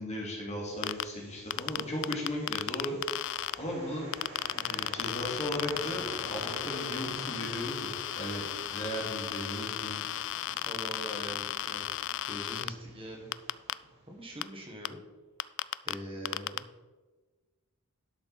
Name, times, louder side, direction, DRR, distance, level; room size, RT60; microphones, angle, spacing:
voice 1, 0.0-4.1 4.5-8.5 8.7-10.0, equal, 30° left, -3 dB, 2.6 m, -36 dB
sound 1, 0.7-14.5, right 1 dB, 55° right, 3.4 m, -49 dB
sound 2, 0.8-1.0 1.5-3.5 4.1-12.7 13.3-13.7 14.4-14.5 14.8-14.9 15.4-15.9 16.3-16.6, left 13 dB, 60° left, 0.3 m, -34 dB
voice 2, 10.6-11.8 12.3-13.3 14.1-15.0 15.8-16.6, equal, 25° right, 0 dB, 1.5 m, -42 dB
11.5 x 6.8 x 4.2 m, 1.3 s
head